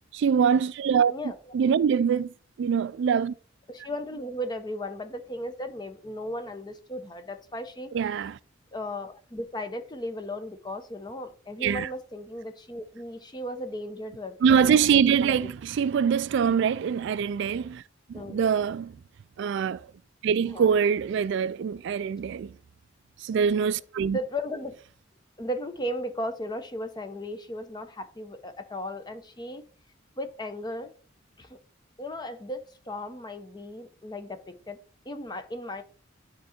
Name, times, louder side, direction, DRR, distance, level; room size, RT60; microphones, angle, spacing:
voice 1, 0.1-1.1 1.5-2.3 2.6-3.3 7.9-8.4 11.6-11.9 14.4-17.8 18.1-19.0 19.4-19.9 20.2-22.5 23.2-24.2, right 7 dB, 65° right, 0.3 m, -24 dB
voice 2, 3.7-8.2 8.7-15.5 18.1-18.4 20.3-20.7 24.1-24.8 25.4-29.6 30.2-30.9 31.4-31.6 32.0-34.8 35.0-35.8, left 1 dB, 20° left, 0.8 m, -36 dB
11.0 x 3.7 x 4.3 m
head